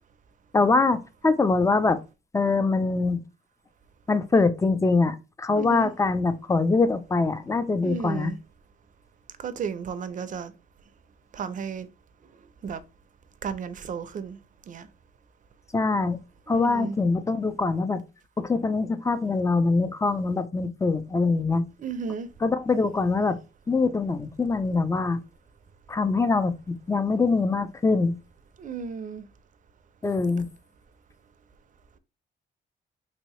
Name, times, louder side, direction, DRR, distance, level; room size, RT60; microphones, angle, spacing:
voice 1, 0.5-2.0 2.3-3.2 4.1-8.3 15.7-16.2 16.5-18.0 18.4-21.7 22.4-23.4 23.7-25.2 25.9-28.2 30.0-30.5, left 3 dB, 15° left, 0.4 m, -23 dB
voice 2, 5.6-5.9 7.8-8.3 9.4-10.5 11.3-11.9 12.6-12.8 13.4-14.4 14.7-14.9 16.5-16.9 21.8-22.3 28.6-29.2, right 6 dB, 40° right, 0.5 m, -33 dB
3.0 x 2.8 x 3.0 m
cardioid pair, 90°, 20 cm